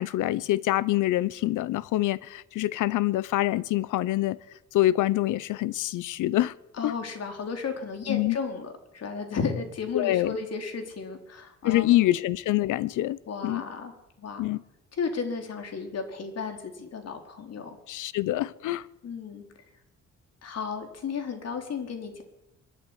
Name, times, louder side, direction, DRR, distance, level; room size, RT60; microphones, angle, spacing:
voice 1, 0.0-4.4 4.7-6.5 6.8-6.9 8.1-8.4 9.9-10.4 11.6-13.6 14.4-14.6 17.9-18.8, left 15 dB, 85° left, 0.9 m, -25 dB
voice 2, 6.7-12.1 13.3-13.9 14.2-14.5 14.9-17.8 19.0-19.4 20.4-22.2, left 5 dB, 55° left, 4.4 m, -34 dB
23.5 x 12.0 x 10.0 m
cardioid pair, 90°, 30 cm